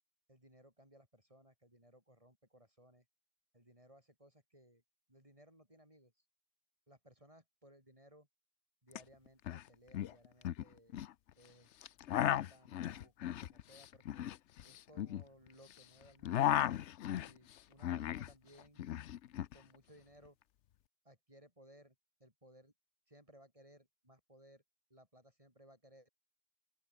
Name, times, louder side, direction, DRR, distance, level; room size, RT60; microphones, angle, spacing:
voice 1, 0.3-3.1 3.5-4.8 5.1-6.2 6.9-8.3 8.8-11.0 11.4-11.7 12.0-14.3 14.6-16.5 17.1-18.9 19.5-20.4 21.0-22.7 23.1-24.6 24.9-26.1, right 1 dB, 25° right, 7.8 m, -63 dB
sound 1, 8.9-9.0 9.3-9.6 9.9-11.1 11.8-15.8 16.1-18.3 18.6-19.5, left 11 dB, 65° left, 0.9 m, -36 dB
open air
omnidirectional pair, 1.4 m